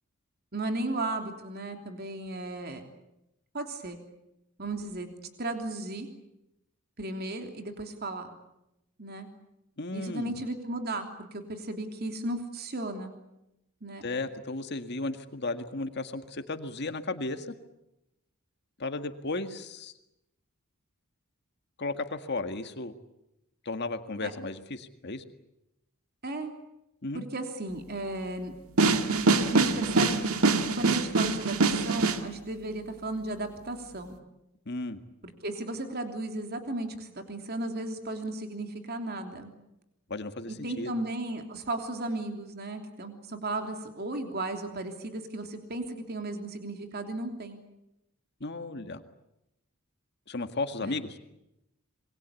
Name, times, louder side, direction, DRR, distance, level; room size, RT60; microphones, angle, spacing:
voice 1, 0.5-2.8 3.5-4.0 4.6-6.1 7.0-8.3 9.0-9.3 9.9-13.2 13.8-14.0 24.2-24.3 26.2-26.5 27.1-28.5 29.4-30.4 30.7-34.2 35.2-39.5 40.5-47.6 50.8-51.0, right 2 dB, 50° right, 5 dB, 3.1 m, -35 dB
voice 2, 9.8-10.3 14.0-17.5 18.8-19.9 21.8-22.9 23.7-25.2 27.0-27.2 34.7-35.0 40.1-40.9 48.4-49.0 50.3-51.2, left 2 dB, 50° left, 8 dB, 1.9 m, -34 dB
sound 1, 28.8-32.2, right 3 dB, 85° right, 1.9 m, -24 dB
27.0 x 22.5 x 8.4 m, 0.87 s
head